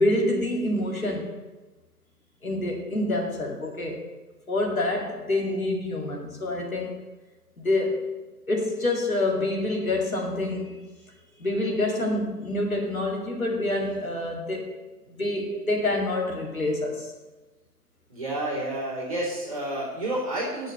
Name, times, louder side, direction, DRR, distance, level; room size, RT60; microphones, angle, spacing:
voice 1, 0.0-1.4 2.4-4.0 4.5-7.0 7.6-8.1 8.5-10.9 11.4-14.7 15.2-17.1, left 2 dB, 55° left, -1 dB, 2.5 m, -27 dB
voice 2, 18.1-20.7, right 1 dB, 20° right, -9 dB, 3.1 m, -30 dB
8.2 x 6.5 x 8.4 m, 1.1 s
figure-of-eight pair, 175°, 49 cm